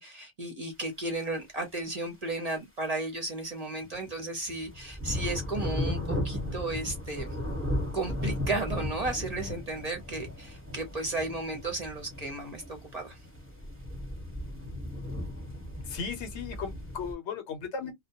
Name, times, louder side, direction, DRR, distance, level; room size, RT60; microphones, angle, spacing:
voice 1, 0.0-7.4 7.9-13.2, right 2 dB, 40° right, 0.7 m, -34 dB
sound 1, 3.8-4.1 4.5-17.1, left 1 dB, 10° right, 0.9 m, -36 dB
voice 2, 15.8-17.9, left 6 dB, 75° left, 1.0 m, -36 dB
2.2 x 2.2 x 2.8 m
omnidirectional pair, 1.2 m